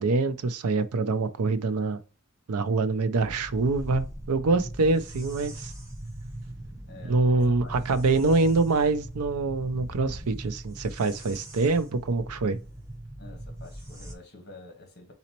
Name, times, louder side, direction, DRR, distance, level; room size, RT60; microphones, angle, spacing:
voice 1, 0.0-2.0 2.5-5.7 7.0-12.6, right 3 dB, 90° right, 0.5 m, -25 dB
sound 1, 3.1-14.1, right 1 dB, 15° right, 0.8 m, -40 dB
voice 2, 6.9-8.0 13.2-15.1, left 2 dB, 50° left, 1.3 m, -49 dB
4.1 x 4.1 x 2.9 m
head